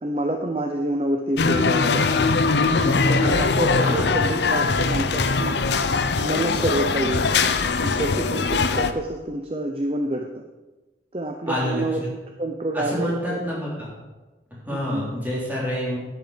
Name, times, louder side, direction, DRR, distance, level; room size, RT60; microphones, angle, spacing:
voice 1, 0.0-2.0 2.8-5.6 6.2-7.3 7.8-10.4 11.1-12.0 12.4-13.4 14.7-15.0, right 1 dB, 30° right, 4 dB, 0.6 m, -27 dB
sound 1, 1.4-8.9, left 4 dB, 70° left, 0.6 m, -21 dB
voice 2, 3.8-4.1 11.5-12.1 12.7-13.9 14.6-16.0, equal, 10° right, -7 dB, 3.6 m, -27 dB
10.5 x 8.1 x 5.1 m, 1.2 s
head